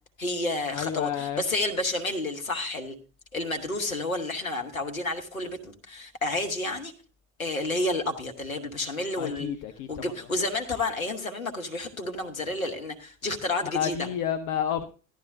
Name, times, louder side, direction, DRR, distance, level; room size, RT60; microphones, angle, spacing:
voice 1, 0.2-3.0 3.3-6.9 7.4-9.5 9.9-14.1, left 2 dB, 90° left, 1.0 m, -30 dB
voice 2, 0.7-1.4 9.2-10.0 13.6-14.8, left 9 dB, 50° left, 0.8 m, -30 dB
14.0 x 11.0 x 2.6 m
figure-of-eight pair, 55°, 41 cm